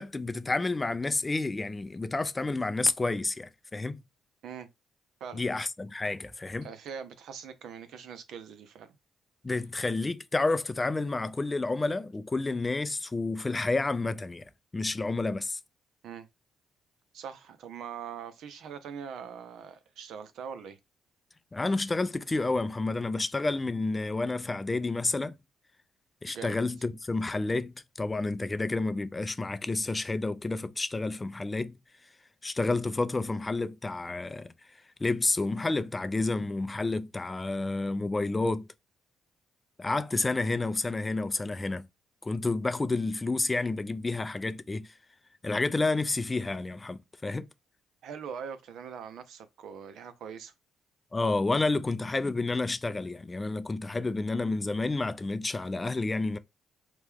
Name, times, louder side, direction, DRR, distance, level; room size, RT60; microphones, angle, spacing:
voice 1, 0.0-4.0 5.3-6.7 9.4-15.6 21.5-25.4 26.2-31.8 32.4-34.5 35.0-38.7 39.8-41.9 42.2-44.9 45.4-47.5 51.1-56.4, left 3 dB, 20° left, 0.4 m, -30 dB
voice 2, 6.6-9.0 16.0-16.3 17.1-20.8 26.3-26.6 48.0-50.5, right 7 dB, 75° right, 0.6 m, -42 dB
3.0 x 2.2 x 3.4 m
cardioid pair, 90°, 0 cm